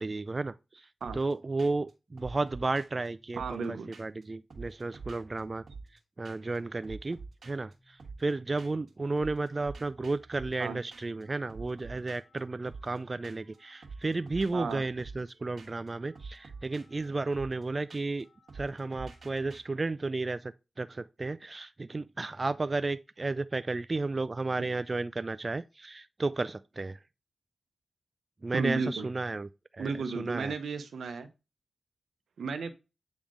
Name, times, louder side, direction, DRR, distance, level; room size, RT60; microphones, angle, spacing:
voice 1, 0.0-5.6 6.2-7.2 7.4-18.3 18.5-27.0 28.4-30.5, right 3 dB, 40° right, 0.3 m, -33 dB
sound 1, 1.0-1.3 1.6-1.9 2.2-4.2 4.5-6.0 6.2-6.6 6.8-8.9 9.2-19.6, right 4 dB, 70° right, 1.4 m, -48 dB
voice 2, 3.4-3.9 10.6-10.8 14.5-14.8 28.5-29.1 29.8-31.3 32.4-32.7, right 4 dB, 85° right, 0.7 m, -33 dB
8.3 x 3.5 x 3.7 m
cardioid pair, 45°, 0 cm